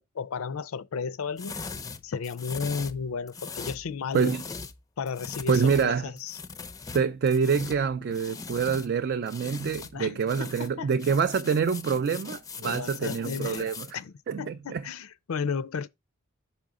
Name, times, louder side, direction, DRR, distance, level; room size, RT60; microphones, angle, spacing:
voice 1, 0.0-1.6 2.0-4.4 5.0-6.4 9.9-10.9 12.6-15.9, left 5 dB, 85° left, 0.5 m, -34 dB
sound 1, 1.4-4.8 5.1-8.9 9.2-9.9 10.2-13.9, left 4 dB, 15° left, 0.4 m, -40 dB
voice 2, 5.5-6.1 6.9-14.0 14.3-14.8, right 6 dB, 50° right, 0.3 m, -26 dB
6.1 x 5.0 x 3.7 m
head